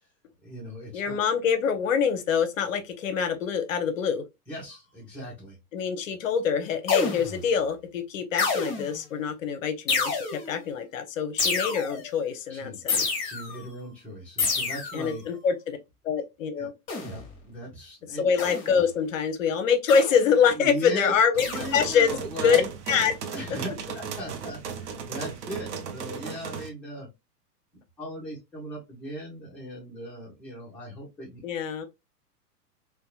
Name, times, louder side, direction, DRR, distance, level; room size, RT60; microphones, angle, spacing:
voice 1, 0.4-1.2 4.5-5.6 12.5-12.8 13.2-15.2 16.6-16.7 17.0-18.2 20.6-21.2 21.4-22.7 23.3-27.1 28.0-31.4, equal, 5° left, 0.5 m, -38 dB
voice 2, 0.9-4.2 5.7-13.1 14.9-15.8 16.0-16.7 18.2-21.5 21.7-22.2 22.4-22.6 22.9-23.1 31.4-31.9, left 6 dB, 55° left, 0.6 m, -25 dB
sound 1, 6.9-7.5 8.4-9.0 9.9-10.6 11.4-12.1 12.9-13.6 14.4-15.1 16.9-17.3 18.4-18.8 19.9-20.3 21.4-21.9, left 4 dB, 25° left, 0.9 m, -29 dB
sound 2, 21.3-26.7, right 6 dB, 50° right, 0.5 m, -36 dB
2.8 x 2.2 x 2.2 m
figure-of-eight pair, 100°, 47 cm